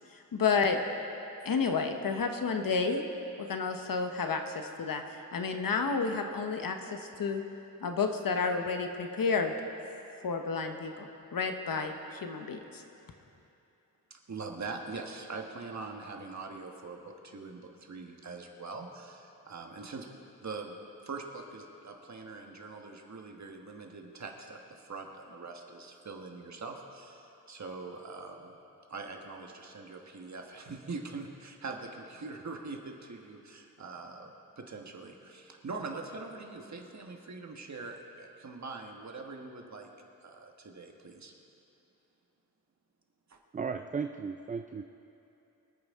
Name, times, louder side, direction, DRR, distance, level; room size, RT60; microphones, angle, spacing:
voice 1, 0.3-0.8 1.4-3.0 3.4-5.0 5.3-7.4 7.8-9.5 10.2-11.9 12.2-12.8, left 5 dB, 70° left, 5 dB, 1.1 m, -30 dB
voice 2, 14.1-20.1 20.4-20.8 21.0-28.5 28.9-34.3 34.6-39.9 40.2-41.3 43.3-43.4, right 3 dB, 50° right, 2 dB, 1.5 m, -43 dB
voice 3, 43.5-44.8, right 5 dB, 25° right, 7 dB, 0.4 m, -35 dB
24.5 x 9.1 x 3.7 m, 2.9 s
wide cardioid pair, 110°, 35 cm